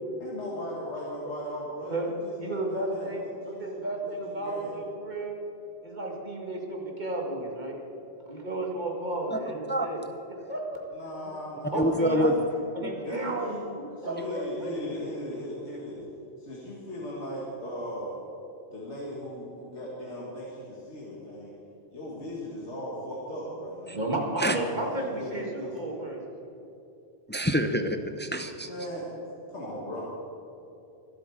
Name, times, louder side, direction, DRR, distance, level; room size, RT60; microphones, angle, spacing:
voice 1, 0.2-4.8 10.9-12.3 13.1-13.6 14.0-16.0 16.4-18.2 18.7-21.5 21.9-24.0 24.5-24.8 25.2-25.8 28.6-30.1, left 1 dB, 80° left, -5 dB, 2.3 m, -38 dB
voice 2, 2.4-5.4 5.8-7.8 8.3-10.0 10.3-10.8 11.7-12.3 12.7-13.6 14.0-14.7 23.9-26.2, right 2 dB, 40° right, 0 dB, 2.0 m, -33 dB
voice 3, 11.7-12.3 12.8-12.9 23.9-24.0 24.4-24.6 27.3-28.7, equal, 15° left, 7 dB, 0.4 m, -26 dB
23.0 x 7.9 x 4.9 m, 2.9 s
omnidirectional pair, 1.1 m